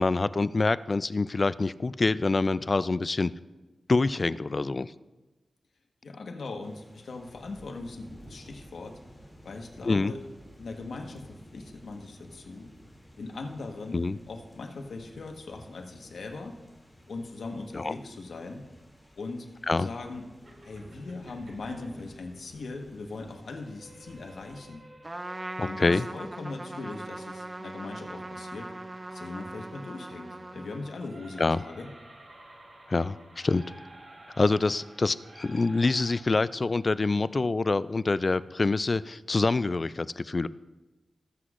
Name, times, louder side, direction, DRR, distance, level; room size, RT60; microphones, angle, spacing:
voice 1, 0.0-3.3 3.9-4.9 9.8-10.1 13.9-14.2 17.7-17.9 19.7-19.9 25.6-26.1 31.4-31.6 32.9-33.6 34.4-40.5, left 3 dB, 40° left, 16 dB, 0.3 m, -26 dB
voice 2, 6.0-9.0 9.4-10.2 10.6-12.7 13.2-16.6 17.1-18.7 19.1-19.5 19.7-20.2 20.6-24.9 25.6-28.7 29.1-31.9, left 3 dB, 75° left, 3 dB, 1.2 m, -40 dB
sound 1, 6.6-24.7, equal, 10° left, 2.5 m, -53 dB
sound 2, 20.4-36.2, right 1 dB, 65° right, 2.6 m, -53 dB
Trumpet, 25.0-31.2, right 2 dB, 25° right, 0.5 m, -40 dB
18.5 x 8.1 x 2.5 m, 1.2 s
wide cardioid pair, 90°, 0 cm